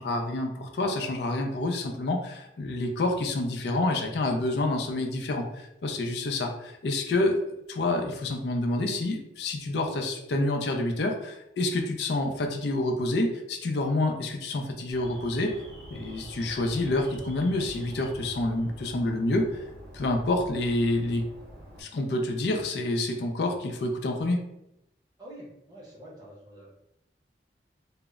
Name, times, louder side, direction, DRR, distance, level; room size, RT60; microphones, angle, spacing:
voice 1, 0.0-5.5 5.8-7.4 7.7-15.5 15.9-19.5 19.9-21.2 21.8-24.4, left 2 dB, 70° left, 3 dB, 0.4 m, -28 dB
Alarm, 14.9-21.8, equal, 60° right, 0.7 m, -46 dB
voice 2, 25.2-26.7, right 1 dB, 20° right, -4 dB, 0.7 m, -46 dB
2.0 x 2.0 x 3.5 m, 0.83 s
head